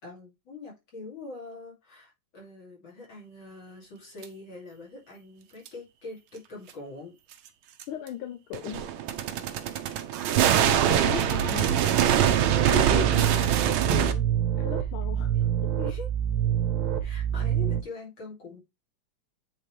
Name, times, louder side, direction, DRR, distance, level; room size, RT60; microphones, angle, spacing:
voice 1, 0.0-7.1 12.8-13.0 15.8-16.1 17.0-18.6, left 3 dB, 65° left, 3.3 m, -43 dB
sound 1, 4.2-4.3 5.7-5.8 7.8-7.9 8.5-14.1, right 10 dB, 80° right, 1.6 m, -24 dB
voice 2, 7.9-8.9 10.2-10.3 10.6-11.8 12.5-13.5 13.8-14.3 14.6-15.5, left 11 dB, 85° left, 1.5 m, -37 dB
sound 2, 12.2-17.8, right 10 dB, 55° right, 1.4 m, -27 dB
8.5 x 3.8 x 3.2 m
omnidirectional pair, 2.3 m